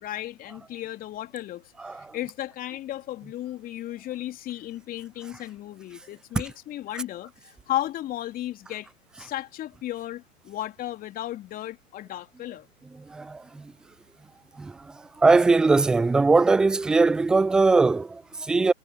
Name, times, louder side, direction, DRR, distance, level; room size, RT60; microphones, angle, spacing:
voice 1, 0.0-8.9 9.2-12.7, left 14 dB, 20° left, 3.2 m, -35 dB
voice 2, 13.1-13.6 14.6-14.8 15.2-18.7, right 3 dB, ahead, 0.4 m, -20 dB
figure-of-eight pair, 115°, 40 cm